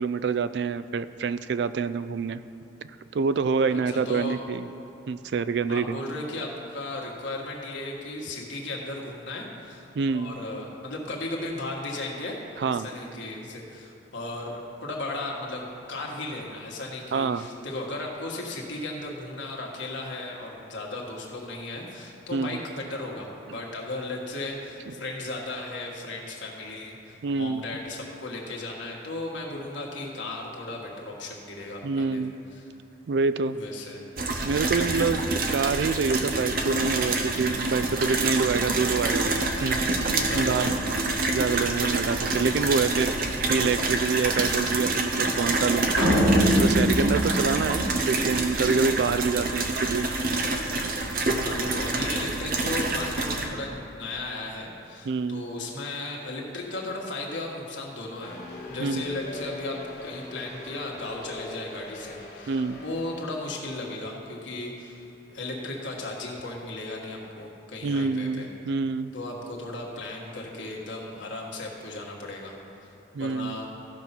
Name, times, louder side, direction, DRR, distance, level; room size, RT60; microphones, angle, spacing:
voice 1, 0.0-2.4 3.1-4.6 5.1-6.0 10.0-10.3 12.6-12.9 17.1-17.5 22.3-22.6 27.2-27.6 31.8-32.3 33.1-33.6 34.4-40.7 41.3-45.9 46.6-50.1 55.1-55.4 58.8-59.1 62.5-62.8 67.8-69.1 73.1-73.6, right 5 dB, 65° right, 14 dB, 0.3 m, -26 dB
voice 2, 3.7-4.4 5.7-32.2 32.5-32.6 33.5-34.1 34.8-35.2 40.2-41.1 51.4-65.0 65.3-68.5 69.1-72.5 72.8-72.9 73.2-73.7, left 2 dB, 80° left, -2 dB, 1.7 m, -36 dB
sound 1, 34.2-53.5, right 2 dB, 50° right, 0.8 m, -27 dB
sound 2, 46.0-48.4, equal, 85° right, 1.6 m, -23 dB
sound 3, 58.2-63.5, left 2 dB, 55° left, 1.8 m, -41 dB
14.5 x 5.5 x 6.0 m, 2.8 s
head